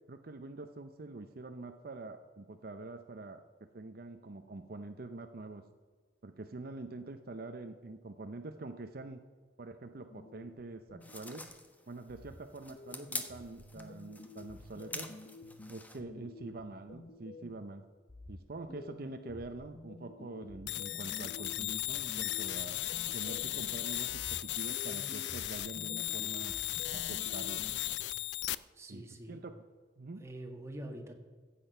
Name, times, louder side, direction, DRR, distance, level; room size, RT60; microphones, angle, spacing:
voice 1, 0.1-3.4 3.7-5.6 6.2-9.2 9.6-11.4 11.9-15.1 15.7-17.8 18.3-22.8 23.1-26.6 26.9-27.7 28.9-29.6 30.0-30.2, right 2 dB, 60° right, 7 dB, 0.6 m, -45 dB
sound 1, 10.1-11.7 12.1-17.7 18.1-23.7 24.1-28.1, left 2 dB, 45° left, 1.0 m, -51 dB
sound 2, 11.0-16.0, left 2 dB, 10° left, 1.1 m, -45 dB
sound 3, 20.7-28.5, left 15 dB, 80° left, 0.4 m, -36 dB
voice 2, 28.7-29.4 30.2-31.2, right 1 dB, 15° right, 2 dB, 1.8 m, -45 dB
15.0 x 8.5 x 5.6 m, 1.5 s
head